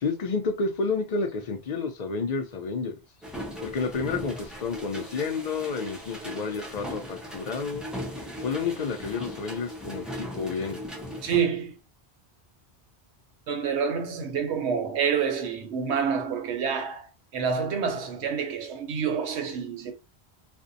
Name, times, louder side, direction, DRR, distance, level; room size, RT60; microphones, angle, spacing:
voice 1, 0.0-3.0 3.6-7.8 8.4-10.8, left 4 dB, 55° left, 0.4 m, -30 dB
sound 1, 3.2-11.4, left 1 dB, ahead, 0.4 m, -38 dB
voice 2, 11.2-11.8 13.5-19.9, right 6 dB, 85° right, 0.9 m, -28 dB
2.5 x 2.1 x 2.5 m
omnidirectional pair, 1.1 m